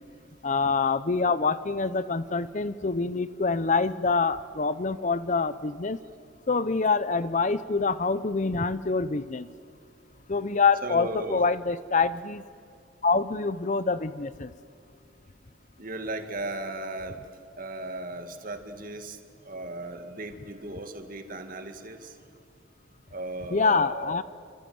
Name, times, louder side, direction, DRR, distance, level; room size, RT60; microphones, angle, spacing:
voice 1, 0.4-6.0 6.5-9.5 10.3-12.4 13.0-14.5 23.5-24.2, left 4 dB, 35° left, 15 dB, 0.6 m, -26 dB
voice 2, 10.8-11.4 15.8-17.3 17.6-22.2 23.1-24.2, right 2 dB, 40° right, 7 dB, 1.9 m, -36 dB
27.5 x 26.0 x 7.8 m, 2.3 s
head